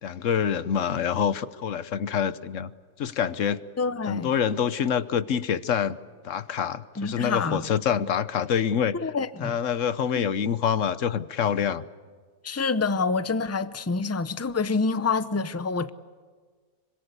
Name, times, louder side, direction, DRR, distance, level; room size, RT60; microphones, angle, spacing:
voice 1, 0.0-2.7 3.0-3.6 4.1-6.0 6.2-8.9 9.4-11.8, left 8 dB, 60° left, 1.2 m, -26 dB
voice 2, 3.8-4.3 7.0-7.7 9.0-9.6 10.1-10.3 12.4-15.9, left 4 dB, 20° left, 0.4 m, -27 dB
26.0 x 24.5 x 8.2 m
omnidirectional pair, 1.6 m